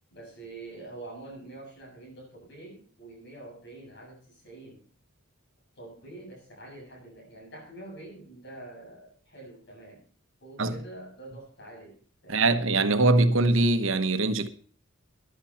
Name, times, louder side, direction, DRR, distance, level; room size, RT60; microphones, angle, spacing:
voice 1, 0.1-4.8 5.7-10.0 10.4-12.5, right 2 dB, 55° left, 7.9 m, -46 dB
voice 2, 12.3-14.5, right 2 dB, 70° right, 1.2 m, -22 dB
14.5 x 11.5 x 4.3 m
head